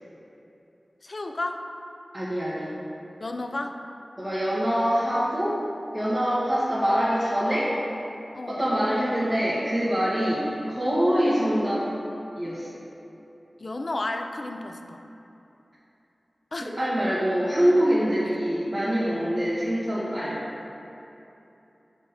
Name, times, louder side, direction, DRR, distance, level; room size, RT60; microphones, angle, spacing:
voice 1, 1.0-1.7 3.2-3.8 8.3-8.6 13.6-15.0 16.5-16.7 19.2-19.3, left 2 dB, 50° left, 5 dB, 0.4 m, -32 dB
voice 2, 2.1-2.7 4.2-5.6 5.9-7.7 8.5-11.9 12.4-12.7 16.6-20.4, equal, ahead, -13 dB, 1.5 m, -24 dB
7.3 x 3.6 x 5.8 m, 2.9 s
wide cardioid pair, 80°, 0 cm